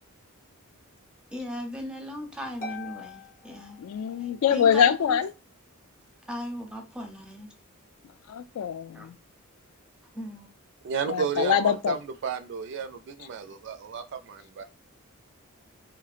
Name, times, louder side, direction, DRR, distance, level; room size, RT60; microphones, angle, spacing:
voice 1, 1.3-3.8 4.2-5.2 6.3-7.5 8.9-9.1 10.1-10.5, equal, 5° right, 0.5 m, -37 dB
Harp, 2.6-4.5, left 4 dB, 40° left, 0.6 m, -42 dB
voice 2, 3.8-5.3 8.3-9.2 11.1-12.0, left 8 dB, 80° left, 0.3 m, -24 dB
voice 3, 10.8-14.6, right 6 dB, 55° right, 0.4 m, -32 dB
3.8 x 2.1 x 2.4 m
head